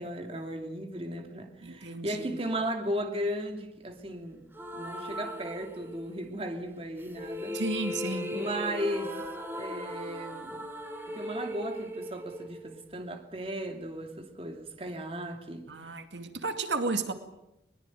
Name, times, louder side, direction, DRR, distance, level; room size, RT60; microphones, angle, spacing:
voice 1, 0.0-4.4 4.7-7.6 8.3-9.2 9.6-10.6 11.1-15.7, right 1 dB, 30° right, 2.5 m, -36 dB
voice 2, 1.6-2.3 7.5-8.3 15.7-17.1, right 3 dB, 85° right, 2.3 m, -33 dB
sound 1, 4.5-6.3 7.0-13.1, left 1 dB, 10° right, 2.8 m, -38 dB
21.5 x 20.5 x 9.3 m
head